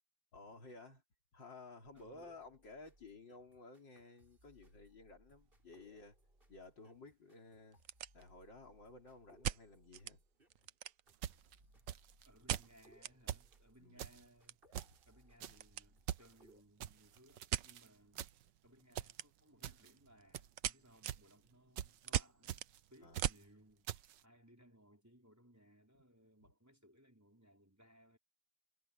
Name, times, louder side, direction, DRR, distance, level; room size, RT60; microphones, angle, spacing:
voice 1, 0.3-1.0 1.3-6.1 6.5-7.8 8.1-10.2 13.8-14.0 23.0-23.2, left 3 dB, 85° left, 4.6 m, -55 dB
sound 1, 1.8-16.6, right 1 dB, 30° right, 7.0 m, -69 dB
voice 2, 1.9-2.4 12.3-14.6 15.1-18.2 18.6-23.9 24.2-28.2, equal, 10° right, 5.3 m, -65 dB
sound 2, 5.4-5.6 5.9-6.0 6.7-6.8 7.0-7.1 7.6-8.6 9.4-10.2 10.5-11.3 12.5-13.2 13.5-13.6 13.9-15.9 16.2-16.5 17.5-17.7 19.0-19.6 20.0-23.5, right 12 dB, 60° right, 0.9 m, -41 dB
sound 3, 11.1-12.3 12.5-12.9 13.3-13.5 14.0-14.2 14.7-15.0 15.4-15.7 16.1-16.3 16.8-17.9 18.1-18.5 18.9-19.2 19.6-19.9 20.3-20.6 21.0-21.3 21.8-22.0 22.5-22.8 23.1-23.4 23.9-24.2, right 11 dB, 80° right, 1.6 m, -45 dB
omnidirectional pair, 1.9 m